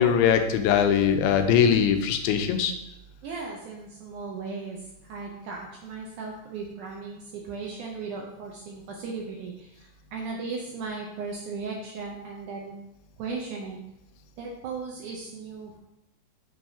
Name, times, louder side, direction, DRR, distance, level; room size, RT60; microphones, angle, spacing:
voice 1, 0.0-2.7, left 8 dB, 85° left, 7 dB, 2.5 m, -21 dB
voice 2, 3.2-12.7 13.2-13.8 14.4-15.8, right 4 dB, 75° right, -1 dB, 1.8 m, -37 dB
7.8 x 4.6 x 2.7 m, 0.90 s
omnidirectional pair, 4.2 m